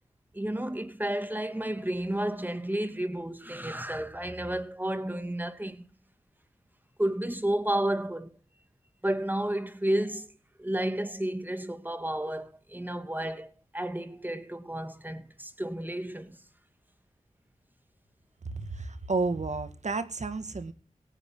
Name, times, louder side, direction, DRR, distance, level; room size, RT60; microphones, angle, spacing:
voice 1, 0.3-5.9 7.0-8.3 9.0-10.3 10.6-16.4, right 1 dB, 15° right, 2.4 m, -31 dB
voice 2, 18.4-20.7, right 3 dB, 60° right, 2.0 m, -31 dB
17.5 x 15.5 x 3.9 m
cardioid pair, 40°, 13 cm